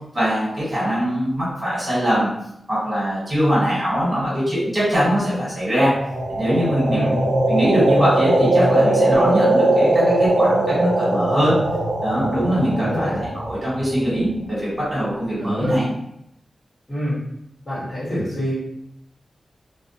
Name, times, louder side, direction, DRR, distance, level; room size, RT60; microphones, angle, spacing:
voice 1, 0.1-2.3 2.7-5.9 6.4-7.1 7.5-11.6 12.0-15.8, equal, 20° right, -9 dB, 1.4 m, -22 dB
sound 1, 6.0-14.0, right 1 dB, 50° right, 0.5 m, -20 dB
voice 2, 12.7-13.1 15.4-15.8 16.9-17.2 17.6-18.5, equal, 30° left, -10 dB, 1.4 m, -26 dB
2.4 x 2.1 x 2.7 m, 0.78 s
wide cardioid pair, 125°, 0 cm